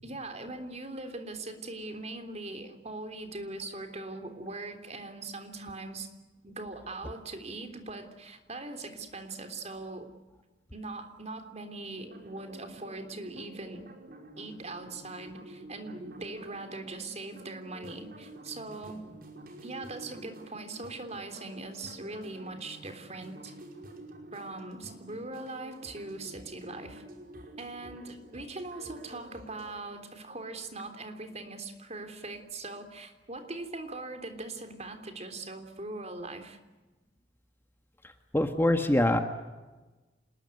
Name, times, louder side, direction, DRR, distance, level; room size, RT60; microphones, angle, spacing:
voice 1, 0.0-6.1 6.4-10.1 10.7-13.8 14.4-19.0 19.6-23.5 24.3-27.0 27.6-36.6, right 2 dB, 35° right, 6 dB, 3.4 m, -41 dB
sound 1, 12.0-29.8, right 1 dB, 50° right, 5.2 m, -49 dB
voice 2, 38.3-39.2, left 1 dB, 10° left, 6 dB, 1.5 m, -24 dB
28.0 x 20.5 x 9.6 m, 1.2 s
head